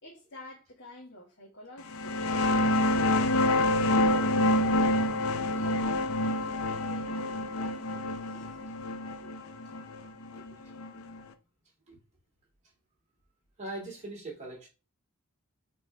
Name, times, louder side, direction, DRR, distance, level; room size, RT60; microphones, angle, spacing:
voice 1, 0.0-2.5 3.0-5.0 5.5-8.5, left 1 dB, 60° left, 1.8 m, -49 dB
sound 1, 1.9-11.2, left 1 dB, 75° left, 0.6 m, -27 dB
voice 2, 13.6-14.7, right 2 dB, 35° right, 2.9 m, -41 dB
5.7 x 3.8 x 4.7 m
head